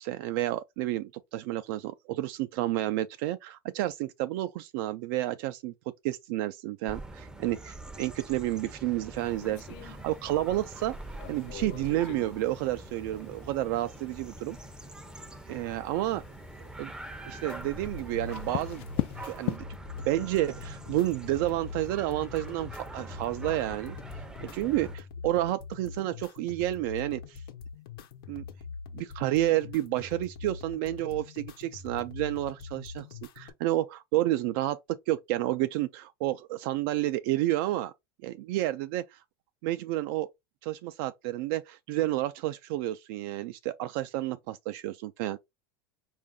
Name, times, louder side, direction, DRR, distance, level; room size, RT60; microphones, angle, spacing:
voice 1, 0.0-5.7 6.0-10.9 11.3-14.6 15.5-16.2 16.8-16.9 17.3-18.8 19.2-19.6 20.1-24.0 24.4-27.4 28.3-28.4 28.9-37.9 38.2-39.2 39.6-40.3 40.6-45.4, right 15 dB, 65° right, 0.4 m, -30 dB
sound 1, 6.9-25.0, right 2 dB, 5° right, 0.6 m, -44 dB
sound 2, 9.2-19.6, left 17 dB, 50° left, 0.4 m, -41 dB
sound 3, 17.5-33.5, left 5 dB, 75° left, 1.0 m, -44 dB
4.4 x 2.6 x 3.6 m
supercardioid pair, 120°, 12 cm